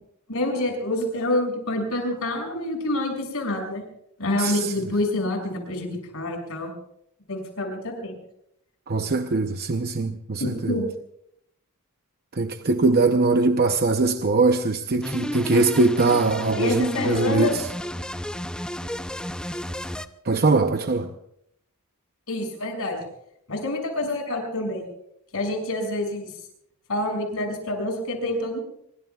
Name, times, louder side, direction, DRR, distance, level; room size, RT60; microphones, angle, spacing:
voice 1, 0.3-3.8 4.2-6.7 7.3-8.2 10.4-10.9 16.5-17.5 22.3-23.0 23.5-24.9 25.3-26.3 26.9-28.6, left 1 dB, 70° left, 6.5 m, -27 dB
voice 2, 4.4-4.7 8.9-10.8 12.3-17.7 20.2-21.1, right 3 dB, 45° right, 0.7 m, -22 dB
sound 1, 15.0-20.1, left 1 dB, 5° left, 0.5 m, -32 dB
26.0 x 23.5 x 2.4 m
head